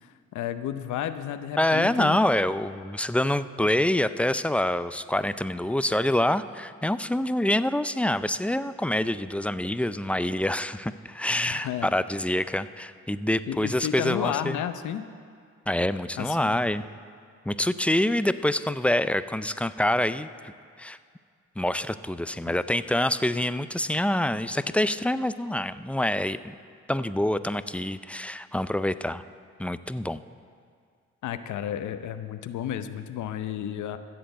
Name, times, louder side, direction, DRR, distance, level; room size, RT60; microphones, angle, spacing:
voice 1, 0.0-2.2 11.5-11.9 13.5-15.0 16.2-16.6 31.2-34.0, left 10 dB, 75° left, 10 dB, 0.7 m, -32 dB
voice 2, 1.6-14.6 15.7-16.8 17.5-20.5 20.8-21.0 21.6-26.6 26.9-29.2 29.6-30.2, left 1 dB, 5° left, 13 dB, 0.3 m, -26 dB
14.0 x 7.7 x 8.0 m, 2.1 s
cardioid pair, 90°, 30 cm